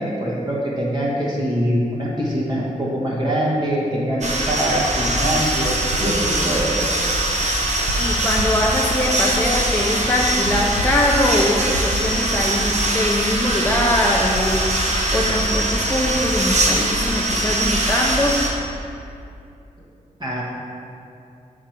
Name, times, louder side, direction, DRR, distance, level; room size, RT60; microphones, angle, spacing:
voice 1, 0.0-6.9 20.2-20.4, right 1 dB, 30° right, -5 dB, 1.3 m, -23 dB
sound 1, 4.2-18.5, right 1 dB, 55° right, 1.1 m, -22 dB
voice 2, 8.0-14.7 15.1-18.4, left 1 dB, 10° left, -2 dB, 0.6 m, -22 dB
6.0 x 4.8 x 5.9 m, 2.6 s
wide cardioid pair, 90°, 14 cm